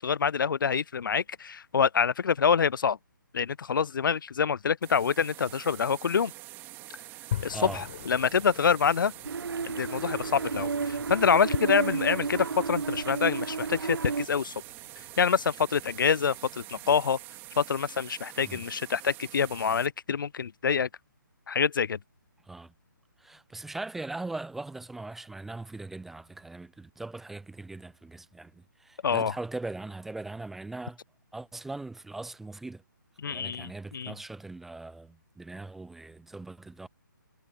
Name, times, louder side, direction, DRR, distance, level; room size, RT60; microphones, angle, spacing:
voice 1, 0.0-3.0 3.3-6.3 7.4-9.1 9.7-14.5 15.2-17.2 17.6-20.9 21.5-22.0 29.0-29.3 33.2-34.1, left 6 dB, 70° left, 0.4 m, -26 dB
sound 1, 4.8-19.9, right 19 dB, 20° right, 3.1 m, -46 dB
sound 2, 7.3-17.6, left 11 dB, 40° left, 5.0 m, -44 dB
voice 2, 7.5-7.8 18.4-18.6 22.5-22.7 23.2-31.0 31.3-32.8 33.2-36.9, right 2 dB, ahead, 0.4 m, -40 dB
sound 3, 9.2-14.3, right 5 dB, 90° right, 0.5 m, -32 dB
hypercardioid pair, 150°, 11 cm